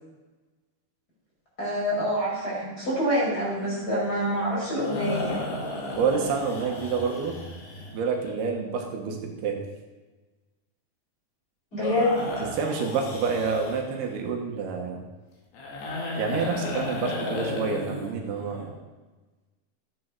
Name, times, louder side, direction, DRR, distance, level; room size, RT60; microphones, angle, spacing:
voice 1, 1.6-5.4 11.7-12.2, equal, 20° left, -6 dB, 4.9 m, -26 dB
sound 1, 3.5-8.3 11.8-14.0 15.5-18.6, left 2 dB, 80° left, 4.3 m, -34 dB
voice 2, 6.0-7.4 7.9-9.6 12.5-15.0 16.2-18.7, right 5 dB, 80° right, 2 dB, 3.3 m, -28 dB
13.5 x 8.9 x 4.8 m, 1.2 s
omnidirectional pair, 4.6 m